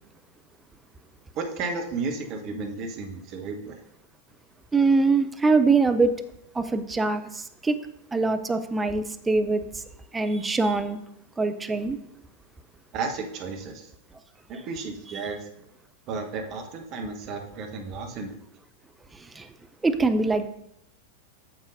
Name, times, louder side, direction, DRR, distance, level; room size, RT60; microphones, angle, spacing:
voice 1, 1.3-3.8 12.9-13.9 14.5-15.5 16.1-18.4, right 4 dB, 40° right, 3 dB, 1.1 m, -33 dB
voice 2, 4.7-6.1 6.5-7.8 8.1-9.6 10.1-11.0 11.4-12.0 19.4-19.5 19.8-20.5, right 3 dB, 10° right, 8 dB, 0.6 m, -23 dB
8.8 x 7.1 x 2.6 m, 0.77 s
figure-of-eight pair, 90°, 0 cm